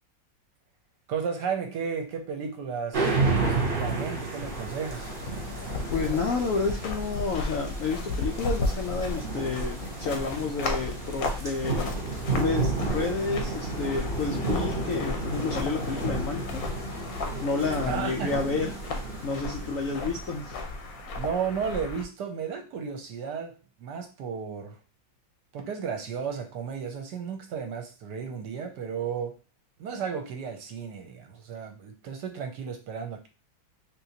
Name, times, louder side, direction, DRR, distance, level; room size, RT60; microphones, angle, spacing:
voice 1, 1.1-5.1 17.8-18.3 21.2-24.8 25.5-29.4 29.8-33.3, right 6 dB, 70° right, 5 dB, 1.2 m, -34 dB
sound 1, 2.9-20.7, right 4 dB, 50° right, 0.6 m, -32 dB
sound 2, 4.4-22.0, left 2 dB, 65° left, 1.0 m, -34 dB
voice 2, 5.9-11.9 12.3-16.6 17.4-18.7 19.2-20.6, left 4 dB, 85° left, 2 dB, 0.7 m, -30 dB
4.0 x 3.0 x 2.7 m, 0.33 s
omnidirectional pair, 2.1 m